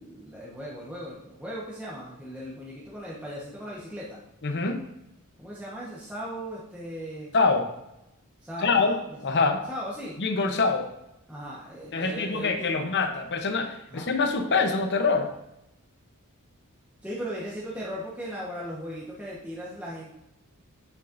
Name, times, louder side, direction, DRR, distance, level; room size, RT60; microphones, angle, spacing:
voice 1, 0.0-4.2 5.4-7.3 8.4-9.0 9.7-10.2 11.3-12.9 13.9-14.0 17.0-20.1, equal, 5° right, -7 dB, 1.2 m, -37 dB
voice 2, 4.4-4.8 7.3-7.7 8.6-8.9 9.2-9.6 10.2-10.9 11.9-15.3, left 4 dB, 50° left, 6 dB, 0.9 m, -25 dB
8.3 x 7.2 x 2.6 m, 0.87 s
head